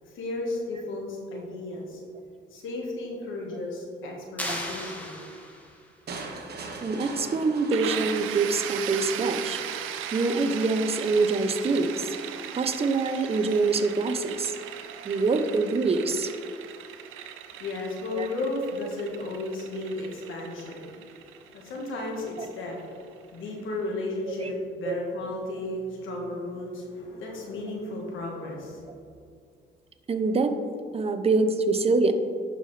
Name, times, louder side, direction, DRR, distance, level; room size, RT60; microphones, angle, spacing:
voice 1, 0.0-2.0 2.5-5.2 17.4-28.9, left 2 dB, 85° left, -1 dB, 1.5 m, -34 dB
sound 1, 4.4-5.9, equal, 5° left, 1.4 m, -35 dB
sound 2, 6.1-9.1, right 3 dB, 55° right, 1.1 m, -40 dB
voice 2, 6.8-9.6 10.1-12.1 12.6-14.5 15.0-16.3 18.2-18.3 22.4-22.5 24.4-24.5 24.8-24.9 30.1-30.6 30.9-32.1, right 3 dB, 30° right, 8 dB, 0.6 m, -25 dB
sound 3, 7.7-23.3, right 9 dB, 90° right, 0.5 m, -38 dB
9.6 x 5.7 x 3.2 m, 2.3 s
cardioid pair, 90°, 20 cm